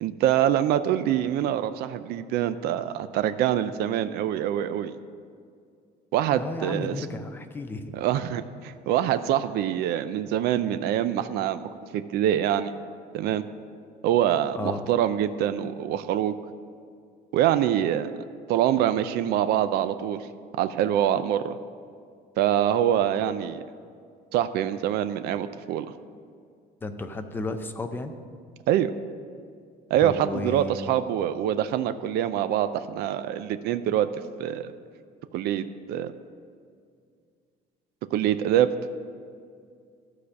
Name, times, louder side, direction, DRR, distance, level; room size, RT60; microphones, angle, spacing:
voice 1, 0.0-5.0 6.1-7.1 7.9-12.7 13.1-13.4 14.0-16.3 17.3-18.1 18.5-20.2 20.6-21.6 22.4-23.6 24.3-25.9 28.7-28.9 29.9-34.1 34.4-34.7 35.3-36.1 38.1-38.7, right 11 dB, 65° right, 11 dB, 0.4 m, -25 dB
voice 2, 6.3-7.9 14.6-14.9 26.8-28.2 30.0-30.9, left 2 dB, 10° left, 7 dB, 0.4 m, -33 dB
13.0 x 5.0 x 6.9 m, 2.2 s
cardioid pair, 180°, 18 cm